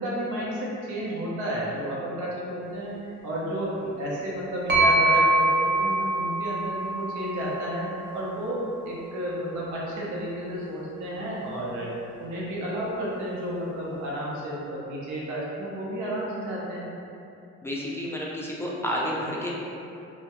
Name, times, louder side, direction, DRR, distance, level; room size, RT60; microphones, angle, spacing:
voice 1, 0.0-11.9 12.2-16.9, right 1 dB, 75° right, -6 dB, 0.7 m, -32 dB
sound 1, 4.7-8.5, right 1 dB, 40° right, 0.6 m, -24 dB
voice 2, 17.6-19.5, equal, 10° left, -5 dB, 0.3 m, -30 dB
2.2 x 2.1 x 2.8 m, 2.7 s
cardioid pair, 90°, 30 cm